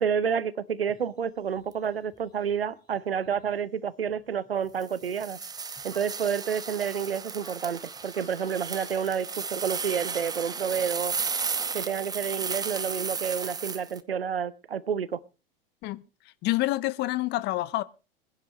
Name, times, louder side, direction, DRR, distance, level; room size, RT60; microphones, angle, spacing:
voice 1, 0.0-5.4 5.8-11.1 11.7-15.2, right 7 dB, 80° right, 0.8 m, -29 dB
sound 1, 0.9-10.9, left 1 dB, 15° left, 5.1 m, -56 dB
sound 2, 4.8-14.0, right 5 dB, 15° right, 0.9 m, -34 dB
voice 2, 16.4-17.8, left 17 dB, 35° left, 0.8 m, -27 dB
23.5 x 10.5 x 3.1 m
figure-of-eight pair, 85°, 29 cm